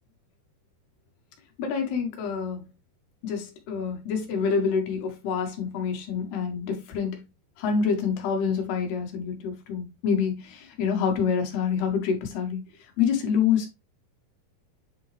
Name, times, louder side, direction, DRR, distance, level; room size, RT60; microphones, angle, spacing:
voice 1, 1.6-2.7 3.2-7.2 7.6-12.6 13.0-13.7, left 6 dB, 80° left, 3.6 m, -27 dB
9.5 x 3.9 x 3.2 m
omnidirectional pair, 4.5 m